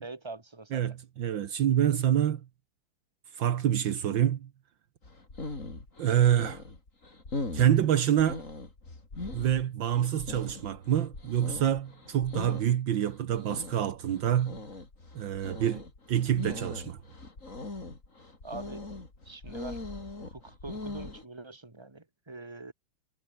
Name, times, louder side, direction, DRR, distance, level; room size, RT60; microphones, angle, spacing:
voice 1, 0.0-1.0 18.4-18.8 19.2-19.8 20.2-22.7, right 3 dB, 15° right, 2.5 m, -44 dB
voice 2, 0.7-2.4 3.4-4.5 6.0-6.6 7.5-8.4 9.3-14.6 15.2-15.8 16.1-17.0, right 10 dB, 70° right, 1.8 m, -26 dB
sound 1, 5.0-21.2, left 2 dB, 40° left, 4.6 m, -41 dB
omnidirectional pair, 2.2 m